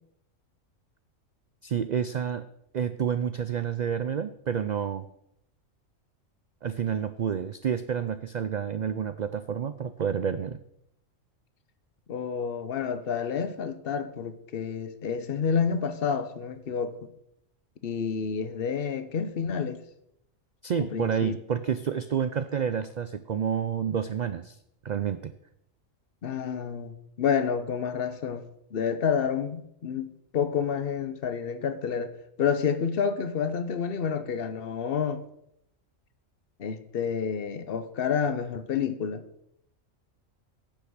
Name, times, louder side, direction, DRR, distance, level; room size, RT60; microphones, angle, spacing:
voice 1, 1.6-2.4 2.7-5.0 6.6-10.6 20.6-24.6 24.8-25.3, right 8 dB, 85° right, 0.4 m, -29 dB
voice 2, 12.1-17.0 17.8-19.8 20.8-21.4 26.2-32.1 32.4-35.2 36.6-39.2, left 7 dB, 50° left, 1.0 m, -29 dB
10.0 x 5.9 x 7.8 m
omnidirectional pair, 1.4 m